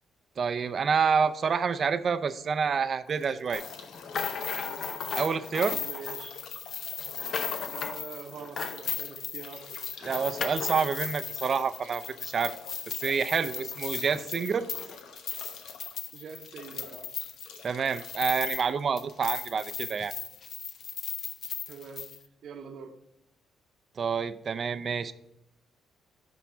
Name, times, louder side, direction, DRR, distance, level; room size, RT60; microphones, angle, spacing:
voice 1, 0.4-3.6 5.1-5.8 10.0-12.5 13.0-14.7 17.6-20.1 24.0-25.1, right 6 dB, 50° right, 12 dB, 0.5 m, -28 dB
Bathtub (filling or washing) / Drip / Trickle dribble, 2.6-19.9, left 5 dB, 90° left, 1.0 m, -50 dB
sound 1, 3.5-18.7 19.0-22.2, left 6 dB, 55° left, 0.7 m, -36 dB
voice 2, 5.7-6.4 7.7-9.7 16.1-17.1 21.7-22.1 22.4-23.0, right 5 dB, 65° right, 7 dB, 1.0 m, -44 dB
10.0 x 3.7 x 5.5 m, 0.85 s
cardioid pair, 90°, 0 cm